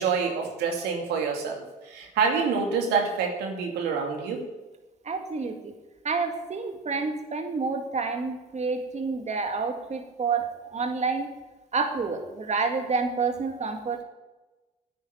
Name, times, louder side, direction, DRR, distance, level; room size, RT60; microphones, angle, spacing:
voice 1, 0.0-4.4, right 5 dB, 85° right, 1 dB, 2.6 m, -27 dB
voice 2, 5.0-5.7 6.0-11.4 11.7-14.0, right 4 dB, 45° right, 4 dB, 2.1 m, -29 dB
10.0 x 9.6 x 9.7 m, 1.1 s
supercardioid pair, 55°, 16 cm